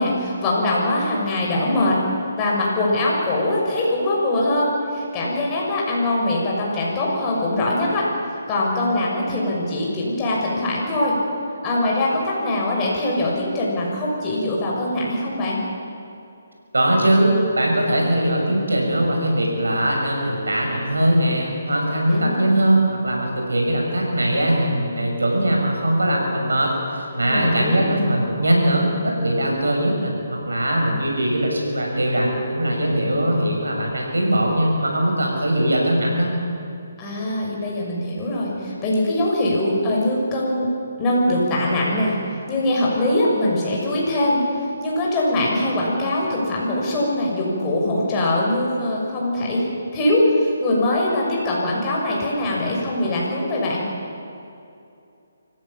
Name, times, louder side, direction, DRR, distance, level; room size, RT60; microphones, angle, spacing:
voice 1, 0.0-2.0 2.4-8.1 8.5-11.1 11.6-15.6 22.1-22.5 27.2-27.8 37.0-40.7 41.0-42.2 42.5-44.4 44.8-49.7 49.9-53.8, left 1 dB, 20° left, -3 dB, 6.4 m, -22 dB
voice 2, 16.7-36.4, right 1 dB, 85° right, 0 dB, 6.5 m, -21 dB
25.5 x 16.0 x 7.3 m, 2.6 s
figure-of-eight pair, 150°, 0 cm